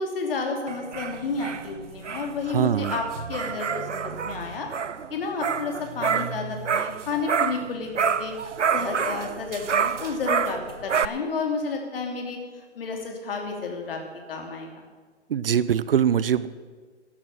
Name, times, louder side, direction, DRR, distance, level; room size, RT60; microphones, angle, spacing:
voice 1, 0.0-4.7 5.1-8.3 8.7-12.4 12.7-14.0 14.3-14.8, left 4 dB, 55° left, 2 dB, 3.2 m, -31 dB
sound 1, 0.7-7.7 7.9-11.1, right 6 dB, 90° right, 0.7 m, -28 dB
voice 2, 2.5-3.0 15.3-16.5, right 9 dB, 55° right, 16 dB, 0.6 m, -22 dB
13.5 x 11.5 x 6.4 m, 1.5 s
figure-of-eight pair, 135°, 35 cm